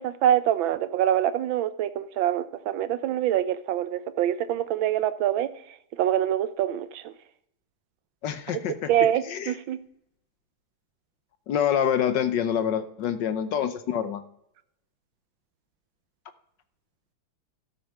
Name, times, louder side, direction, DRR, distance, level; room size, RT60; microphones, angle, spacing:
voice 1, 0.0-5.5 6.0-7.1 8.9-9.8, right 11 dB, 85° right, 14 dB, 1.5 m, -25 dB
voice 2, 8.2-9.5 11.5-14.2, left 9 dB, 70° left, 10 dB, 1.4 m, -26 dB
13.0 x 6.9 x 6.6 m, 0.76 s
omnidirectional pair, 2.1 m